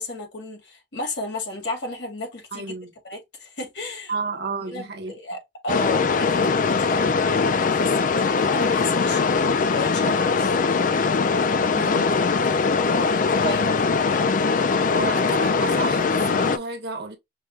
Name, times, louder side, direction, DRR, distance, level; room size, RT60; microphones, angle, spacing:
voice 1, 0.0-2.7 3.0-4.1 4.6-5.4 5.6-10.6 12.8-13.9, left 2 dB, 80° left, 1.9 m, -33 dB
voice 2, 2.5-2.9 4.1-5.2 11.8-12.1 14.9-17.2, right 3 dB, 65° right, 1.1 m, -31 dB
sound 1, 5.7-16.6, left 4 dB, 45° left, 0.4 m, -21 dB
5.4 x 2.2 x 3.2 m
head